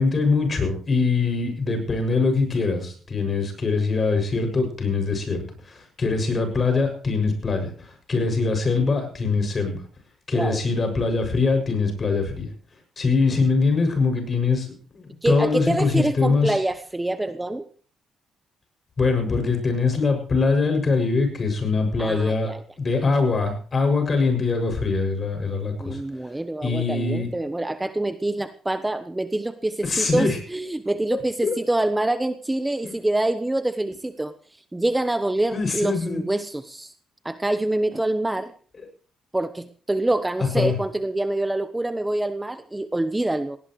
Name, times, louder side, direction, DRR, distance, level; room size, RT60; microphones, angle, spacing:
voice 1, 0.0-9.8 10.3-12.5 13.0-14.7 14.9-16.6 19.0-26.0 26.6-27.3 29.8-30.4 31.4-31.6 32.8-32.9 35.5-36.2 40.5-40.7, left 4 dB, 35° left, 6 dB, 7.0 m, -23 dB
voice 2, 15.2-17.7 22.0-22.6 25.8-34.3 34.7-36.9 37.2-38.5 39.3-43.6, right 1 dB, 10° right, 10 dB, 1.0 m, -26 dB
18.5 x 18.0 x 3.2 m, 0.42 s
cardioid pair, 90°, 0 cm